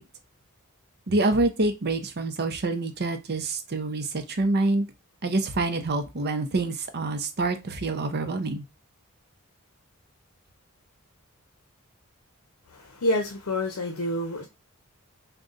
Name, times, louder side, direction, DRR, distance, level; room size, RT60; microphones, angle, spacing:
voice 1, 1.1-4.9 5.2-8.6, right 2 dB, 50° right, 0.6 m, -26 dB
voice 2, 12.7-14.5, left 1 dB, 70° left, 0.7 m, -28 dB
3.8 x 2.3 x 3.8 m
head